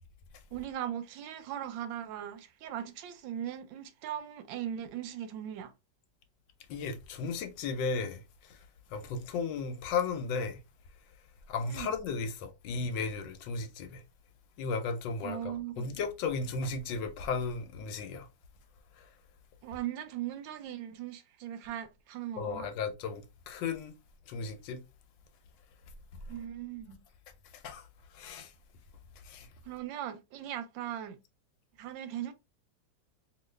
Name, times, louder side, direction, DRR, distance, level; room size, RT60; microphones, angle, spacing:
voice 1, 0.5-5.7 11.7-11.9 15.2-16.0 19.6-22.7 26.3-27.0 29.6-31.2 31.8-32.3, right 10 dB, 85° right, 1.3 m, -39 dB
voice 2, 6.7-8.6 8.9-10.6 11.5-14.0 14.6-18.3 19.0-19.1 22.4-23.9 24.3-24.8 27.5-27.9 28.1-28.5 29.2-29.5, left 4 dB, 85° left, 1.4 m, -35 dB
3.1 x 2.6 x 3.2 m
omnidirectional pair, 2.0 m